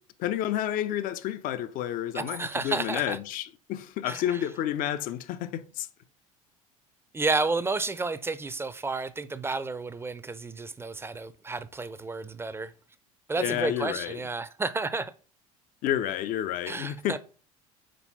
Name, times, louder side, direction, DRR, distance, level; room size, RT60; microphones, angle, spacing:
voice 1, 0.2-5.9 13.4-14.2 15.8-17.2, left 11 dB, 50° left, 0.7 m, -30 dB
voice 2, 2.1-3.2 4.1-4.5 7.1-12.7 13.3-15.1 16.7-17.2, right 3 dB, 15° right, 0.6 m, -31 dB
5.4 x 4.3 x 4.2 m
figure-of-eight pair, 70°, 18 cm